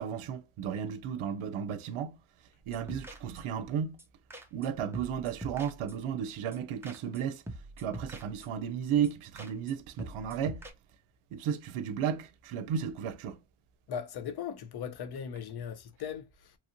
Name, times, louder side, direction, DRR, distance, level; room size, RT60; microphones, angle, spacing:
voice 1, 0.0-2.2 2.7-4.0 4.5-7.4 7.8-10.7 11.3-13.4, right 8 dB, 90° right, 0.6 m, -34 dB
sound 1, 2.6-3.7 4.0-4.1 4.3-4.7 4.9-6.2 6.5-6.6 6.8-7.2 7.5-8.7 9.0-9.1 9.4-9.7 10.0-10.7, right 1 dB, 5° right, 0.4 m, -45 dB
voice 2, 13.9-16.6, left 8 dB, 55° left, 0.6 m, -38 dB
3.0 x 2.5 x 2.8 m
wide cardioid pair, 140°, 48 cm